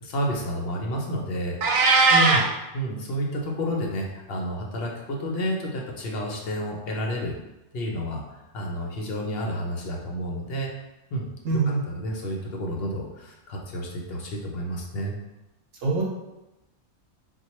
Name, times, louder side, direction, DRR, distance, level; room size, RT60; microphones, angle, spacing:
voice 1, 0.0-1.6 2.7-7.4 7.7-8.2 8.5-10.7 11.1-11.2 11.9-15.1, equal, 55° left, -1 dB, 0.8 m, -30 dB
Meow, 1.6-2.5, right 3 dB, 90° right, 1.0 m, -18 dB
voice 2, 2.1-2.4 11.4-11.8 15.8-16.0, right 3 dB, 75° right, -3 dB, 1.2 m, -24 dB
4.4 x 2.3 x 3.0 m, 0.98 s
omnidirectional pair, 1.4 m